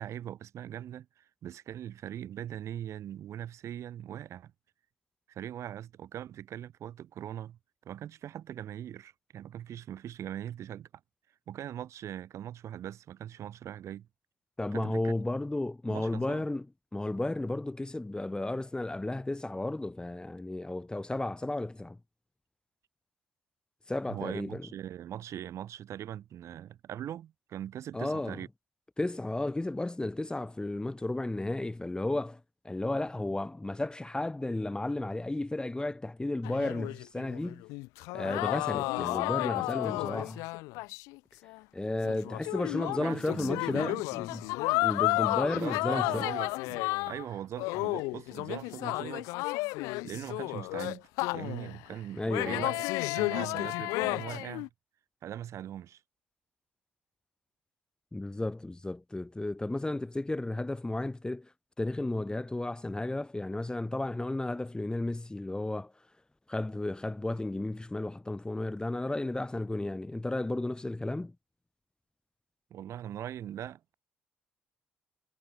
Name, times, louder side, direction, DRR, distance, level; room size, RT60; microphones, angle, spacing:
voice 1, 0.0-4.5 5.3-7.6 7.8-10.9 11.5-14.1 14.7-15.1 15.9-16.4 24.1-28.5 42.9-44.0 45.5-49.3 50.0-51.0 51.3-52.9 53.1-54.7 55.2-56.0 72.7-73.9, right 11 dB, 60° right, 4.3 m, -41 dB
voice 2, 14.6-16.7 16.9-22.0 23.9-24.6 27.9-28.4 29.0-37.6 38.1-40.4 41.7-44.4 44.8-46.3 52.1-52.7 58.1-61.5 61.8-65.9 66.5-71.4, left 2 dB, 15° left, 3.4 m, -33 dB
sound 1, 36.4-41.2 41.5-41.6 42.0-47.3 47.6-51.8 52.3-54.7, left 24 dB, 80° left, 2.4 m, -32 dB
hypercardioid pair, 50°, 6 cm